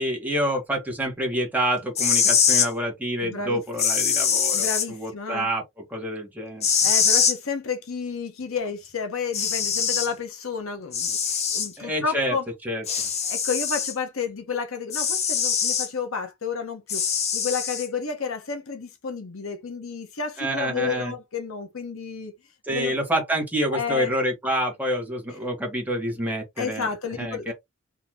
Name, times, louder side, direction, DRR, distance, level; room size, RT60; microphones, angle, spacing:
voice 1, 0.0-5.6 5.9-6.7 11.8-12.3 12.6-13.1 20.4-21.1 22.6-27.5, equal, 10° right, 1.5 m, -27 dB
sound 1, 1.8-2.7 3.8-4.9 6.6-7.4 8.9-9.0 9.3-10.1 10.9-11.7 12.9-13.9 14.9-15.9 16.9-17.9, left 7 dB, 30° left, 0.7 m, -23 dB
voice 2, 3.2-3.6 4.5-5.5 6.8-12.4 13.2-17.0 17.3-22.3 22.7-23.0 23.7-24.1 26.6-27.5, left 5 dB, 80° left, 1.0 m, -31 dB
3.8 x 2.8 x 3.0 m
head